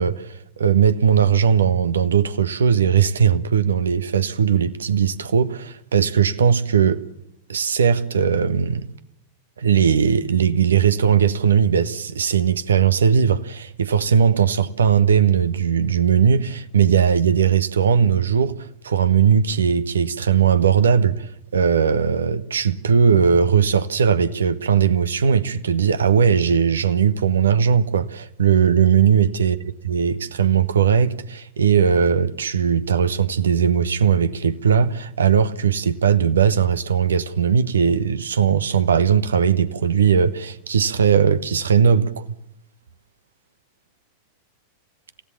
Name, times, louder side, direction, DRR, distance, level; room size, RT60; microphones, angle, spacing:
voice 1, 0.0-7.0 7.5-8.8 9.6-29.6 29.8-42.2, right 7 dB, 70° right, 1.2 m, -18 dB
27.5 x 16.0 x 7.3 m
figure-of-eight pair, 90°, 0 cm